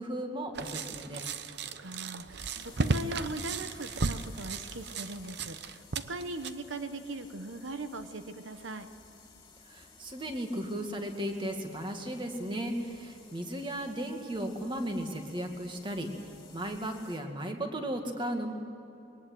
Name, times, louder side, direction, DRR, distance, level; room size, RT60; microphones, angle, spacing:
voice 1, 0.0-1.4 9.7-18.5, right 1 dB, 25° right, 4 dB, 2.1 m, -35 dB
sound 1, 0.5-6.5, right 3 dB, 60° right, 0.9 m, -35 dB
voice 2, 1.5-8.9, right 2 dB, 90° right, 8 dB, 1.2 m, -40 dB
sound 2, 2.4-17.2, left 4 dB, 20° left, 2.7 m, -55 dB
22.5 x 19.0 x 7.9 m, 2.8 s
head